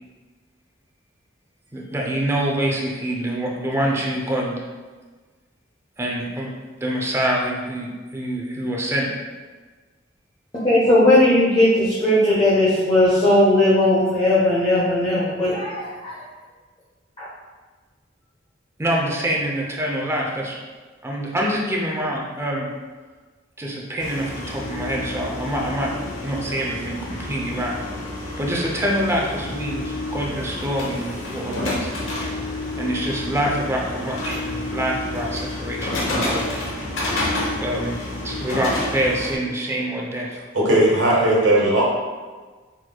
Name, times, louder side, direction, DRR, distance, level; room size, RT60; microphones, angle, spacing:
voice 1, 1.7-4.6 6.0-6.5 6.8-9.1 18.8-20.6 21.0-22.7 23.6-25.9 26.2-27.7 28.4-31.9 32.8-36.5 36.9-37.2 37.6-40.4, right 1 dB, 15° right, -2 dB, 0.5 m, -25 dB
voice 2, 10.6-16.1 17.2-17.3, left 1 dB, 30° left, -10 dB, 0.9 m, -17 dB
sound 1, 24.0-39.4, left 2 dB, 90° left, 0.9 m, -29 dB
voice 3, 40.5-41.8, right 1 dB, 80° right, -4 dB, 1.3 m, -17 dB
4.4 x 4.2 x 2.2 m, 1.4 s
head